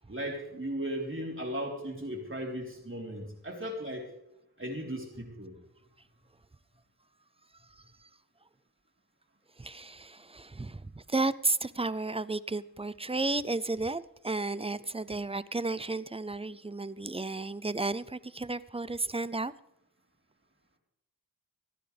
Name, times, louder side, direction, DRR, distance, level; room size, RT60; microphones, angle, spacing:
voice 1, 0.1-4.1 4.6-5.5, equal, 30° right, 3.9 m, -36 dB
voice 2, 9.6-19.5, right 3 dB, 15° right, 0.5 m, -33 dB
26.5 x 10.0 x 3.4 m
wide cardioid pair, 60°, 39 cm